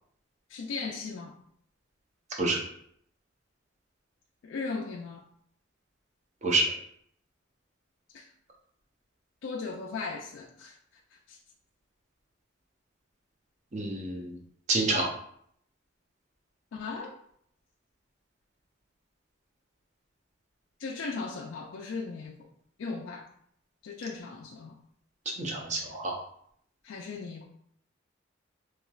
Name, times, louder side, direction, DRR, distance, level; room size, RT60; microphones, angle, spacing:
voice 1, 0.5-1.4 4.4-5.2 8.1-8.3 9.4-11.4 16.7-17.1 20.8-22.5 22.8-23.3 23.8-24.8 26.8-27.5, left 4 dB, 75° left, 0 dB, 0.3 m, -37 dB
voice 2, 13.7-14.4 14.7-15.1 25.4-26.2, right 2 dB, 35° right, -1 dB, 0.6 m, -28 dB
3.1 x 2.9 x 2.3 m, 0.67 s
head